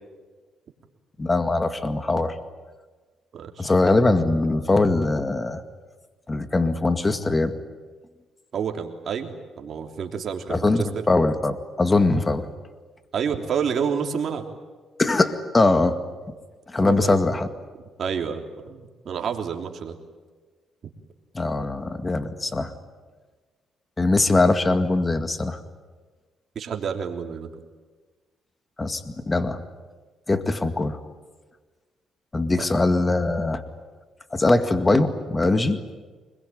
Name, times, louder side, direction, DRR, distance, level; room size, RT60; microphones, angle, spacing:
voice 1, 1.2-2.3 3.6-5.6 6.3-7.5 10.5-12.5 15.0-16.0 16.7-17.5 21.3-22.7 24.0-25.6 28.8-29.6 30.3-31.0 32.3-33.6 34.3-35.8, left 2 dB, 25° left, 9 dB, 2.0 m, -21 dB
voice 2, 3.3-3.7 8.5-11.0 13.1-14.4 16.8-17.2 18.0-19.9 26.5-27.5 32.6-32.7, right 7 dB, 55° right, 3 dB, 3.4 m, -29 dB
25.0 x 22.0 x 9.4 m, 1.4 s
cardioid pair, 90°, 0 cm